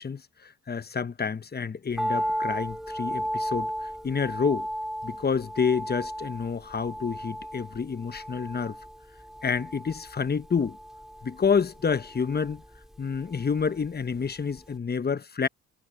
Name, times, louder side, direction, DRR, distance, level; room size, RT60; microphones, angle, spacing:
voice 1, 0.0-4.7 5.0-8.8 9.4-10.8 11.2-12.6 13.0-15.5, left 6 dB, 25° left, 1.0 m, -28 dB
sound 1, 2.0-14.3 14.5-14.6, equal, ahead, 2.9 m, -35 dB
supercardioid pair, 65°, 38 cm